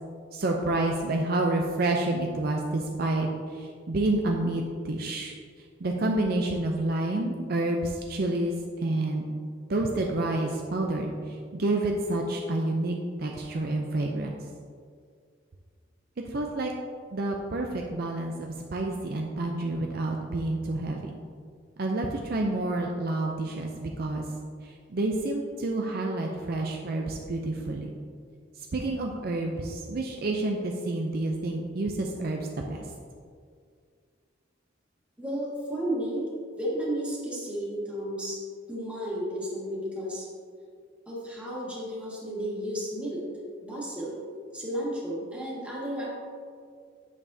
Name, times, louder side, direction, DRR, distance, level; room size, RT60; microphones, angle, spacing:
voice 1, 0.3-5.3 5.8-8.5 8.8-9.2 9.7-14.4 16.2-16.7 17.1-21.1 21.8-24.2 24.6-27.9 28.7-32.8, right 2 dB, 50° right, 1 dB, 0.5 m, -29 dB
voice 2, 35.2-36.3 36.6-38.4 38.7-40.3 41.1-43.2 43.6-44.2 44.5-46.1, right 1 dB, 5° right, -6 dB, 1.8 m, -33 dB
8.4 x 6.9 x 2.7 m, 2.2 s
head